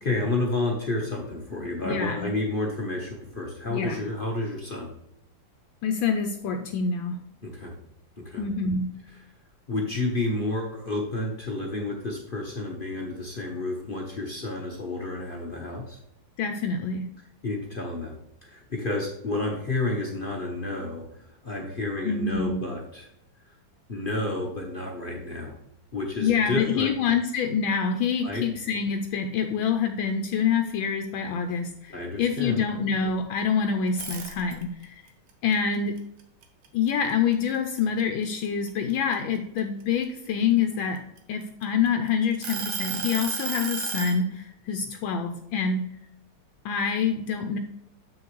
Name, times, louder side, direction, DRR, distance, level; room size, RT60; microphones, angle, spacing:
voice 1, 0.0-4.9 7.4-7.7 8.2-8.4 9.7-16.0 17.4-18.1 18.4-23.1 23.9-25.5 25.9-26.9 28.2-28.5 31.9-32.6, left 2 dB, 40° left, -1 dB, 0.8 m, -30 dB
voice 2, 1.8-2.3 3.7-4.0 5.8-7.2 8.4-8.9 16.4-17.1 22.0-22.6 26.2-35.0 35.4-36.0 36.7-41.0 41.3-45.9 46.6-47.6, left 6 dB, 75° left, 6 dB, 1.3 m, -26 dB
sound 1, 33.9-34.8 35.3-37.1 37.5-37.8 38.2-40.0 40.7-41.9 42.4-44.2, right 7 dB, 75° right, 1.8 m, -33 dB
7.5 x 6.2 x 3.1 m, 0.81 s
omnidirectional pair, 2.2 m